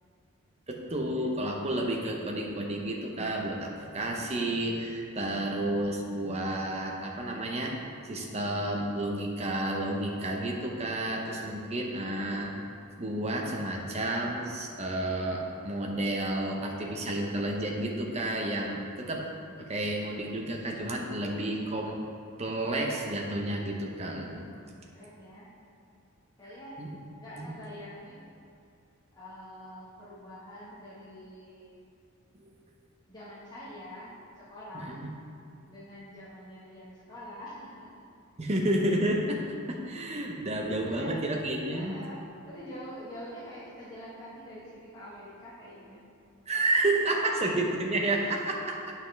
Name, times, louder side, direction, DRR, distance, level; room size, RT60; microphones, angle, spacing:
voice 1, 0.7-7.7 8.0-12.5 13.0-19.3 19.6-22.0 22.4-24.4 26.8-26.9 27.4-27.5 32.4-32.5 34.7-35.1 38.4-41.9 46.5-48.9, right 1 dB, 30° right, 0 dB, 0.8 m, -31 dB
voice 2, 24.9-25.5 26.4-26.8 27.2-28.2 29.1-31.8 33.1-35.0 35.6-38.1 38.4-38.5 40.7-41.2 41.7-46.1 47.1-47.4, equal, 20° left, -9 dB, 1.5 m, -46 dB
9.5 x 5.7 x 3.4 m, 2.5 s
head